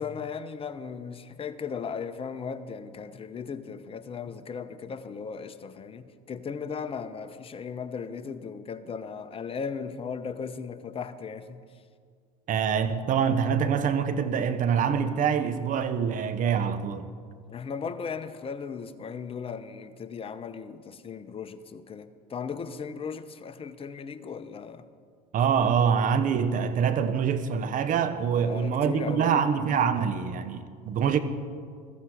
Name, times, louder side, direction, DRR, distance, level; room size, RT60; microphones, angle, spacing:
voice 1, 0.0-11.6 17.5-24.8 28.4-29.3, left 6 dB, 30° left, 1.0 m, -37 dB
voice 2, 12.5-17.0 25.3-31.2, right 7 dB, 40° right, 1.1 m, -25 dB
15.5 x 13.5 x 5.0 m
hypercardioid pair, 75°, 20 cm